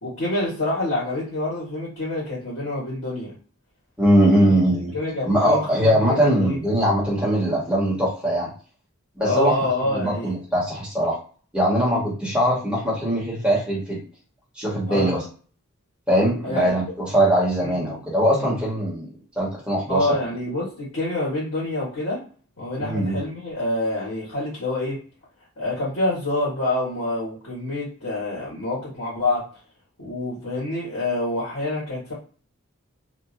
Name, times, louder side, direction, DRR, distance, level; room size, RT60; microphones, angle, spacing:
voice 1, 0.0-3.3 4.2-4.5 4.9-6.6 9.2-10.3 14.9-15.1 16.4-16.7 17.6-18.0 18.3-18.6 19.9-22.2 22.6-25.0 25.6-29.4 30.0-32.1, left 2 dB, 70° left, -7 dB, 1.5 m, -27 dB
voice 2, 4.0-4.9 5.2-8.5 9.2-11.2 11.5-14.0 14.5-15.2 16.1-19.1 19.4-20.1 22.8-23.2, equal, 5° right, -6 dB, 1.2 m, -21 dB
2.8 x 2.4 x 2.5 m, 0.40 s
head